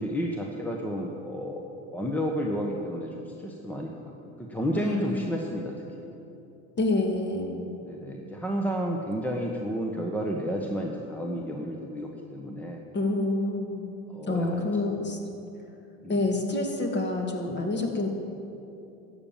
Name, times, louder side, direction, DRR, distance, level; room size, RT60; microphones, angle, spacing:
voice 1, 0.0-4.0 4.4-6.1 7.8-12.9 14.1-14.6 16.0-16.2, equal, 5° left, 0 dB, 1.2 m, -31 dB
voice 2, 4.7-5.3 6.8-7.7 12.9-13.9 14.3-15.2 16.1-18.1, left 2 dB, 30° left, 2 dB, 2.2 m, -27 dB
13.0 x 7.2 x 9.0 m, 2.7 s
supercardioid pair, 100°, 38 cm